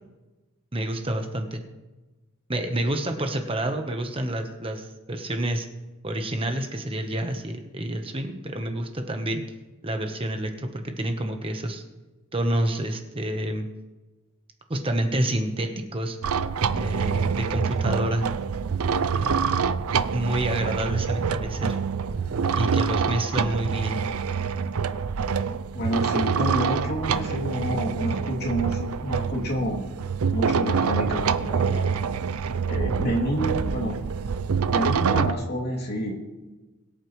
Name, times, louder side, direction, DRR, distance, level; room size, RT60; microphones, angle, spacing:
voice 1, 0.7-1.6 2.5-5.7 6.0-9.4 9.8-11.8 12.3-13.7 14.7-16.2 16.7-18.3 19.1-19.8 20.1-21.8 22.5-24.0, right 1 dB, 25° right, 5 dB, 1.1 m, -28 dB
sound 1, 16.2-35.3, right 6 dB, 80° right, 0.5 m, -26 dB
voice 2, 25.7-29.8 30.3-31.9 32.6-34.0 34.7-36.2, equal, 50° left, -1 dB, 2.7 m, -29 dB
22.0 x 8.6 x 3.2 m, 1.2 s
head